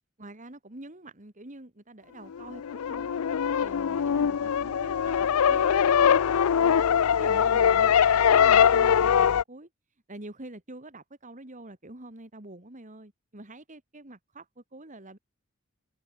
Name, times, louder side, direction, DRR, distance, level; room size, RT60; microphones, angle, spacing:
voice 1, 0.2-3.2 3.6-6.9 7.2-7.9 8.3-9.7 10.1-15.2, right 1 dB, 35° right, 2.6 m, -46 dB
sound 1, 2.3-9.4, left 8 dB, 85° left, 0.4 m, -22 dB
head